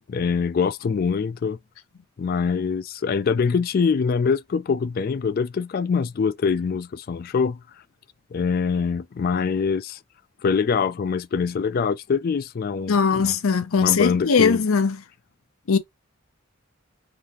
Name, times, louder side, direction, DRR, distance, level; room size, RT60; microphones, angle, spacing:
voice 1, 0.1-1.6 2.2-7.6 8.3-10.0 10.4-13.3 13.8-14.6, left 5 dB, 45° left, 0.3 m, -24 dB
voice 2, 12.9-15.0 15.7-15.8, left 5 dB, 85° left, 0.6 m, -20 dB
3.9 x 3.3 x 2.9 m
head